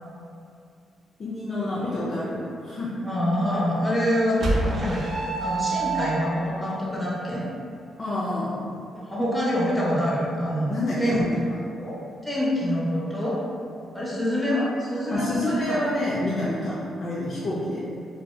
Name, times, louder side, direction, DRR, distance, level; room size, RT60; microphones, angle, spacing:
voice 1, 1.2-2.9 8.0-8.7 10.7-11.4 15.1-17.8, left 1 dB, 45° left, -8 dB, 0.5 m, -28 dB
voice 2, 3.0-5.1 5.4-7.4 9.0-10.7 11.0-11.2 11.7-12.0 12.2-13.4 13.9-15.8, equal, 5° left, -8 dB, 0.7 m, -25 dB
sound 1, 4.4-6.5, right 3 dB, 55° right, 0.5 m, -27 dB
2.7 x 2.2 x 2.2 m, 2.4 s
cardioid pair, 90°, 0 cm